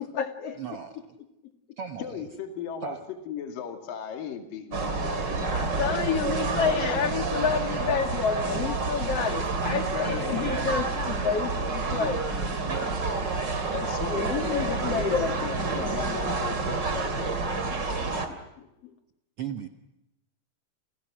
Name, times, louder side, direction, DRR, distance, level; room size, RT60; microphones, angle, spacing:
voice 1, 0.0-0.6 5.5-12.2 14.1-15.4 17.7-18.9, left 6 dB, 45° left, 7 dB, 2.9 m, -29 dB
voice 2, 0.6-0.9 1.8-2.2 2.8-3.0 5.3-5.5 9.6-11.0 11.9-13.3 19.4-19.7, right 6 dB, 60° right, 7 dB, 1.5 m, -37 dB
voice 3, 2.0-6.1 10.0-10.5 13.7-17.4, left 8 dB, 70° left, 6 dB, 3.9 m, -37 dB
sound 1, 4.7-18.3, right 3 dB, 30° right, 3.0 m, -29 dB
29.0 x 29.0 x 6.2 m, 0.91 s
omnidirectional pair, 4.2 m